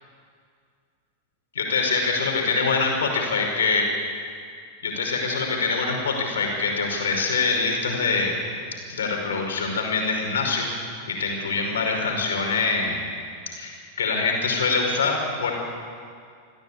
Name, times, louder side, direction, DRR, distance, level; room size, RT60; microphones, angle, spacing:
voice 1, 1.5-3.9 4.8-8.4 8.9-13.0 13.6-15.5, left 4 dB, 65° left, 1 dB, 5.5 m, -24 dB
27.0 x 16.0 x 8.7 m, 2.2 s
figure-of-eight pair, 90°, 0 cm